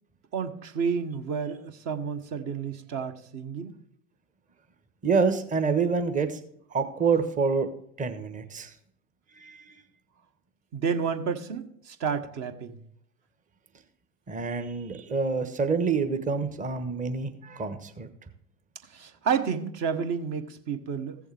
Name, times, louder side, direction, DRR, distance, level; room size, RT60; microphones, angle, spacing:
voice 1, 0.3-3.7 10.7-12.8 18.9-21.3, right 6 dB, 40° right, 7 dB, 1.3 m, -30 dB
voice 2, 5.0-6.4 6.7-7.7 8.0-8.7 9.3-9.8 14.3-18.1, right 5 dB, 20° right, 8 dB, 1.1 m, -27 dB
15.5 x 7.0 x 3.4 m, 0.69 s
hypercardioid pair, 85°, 40 cm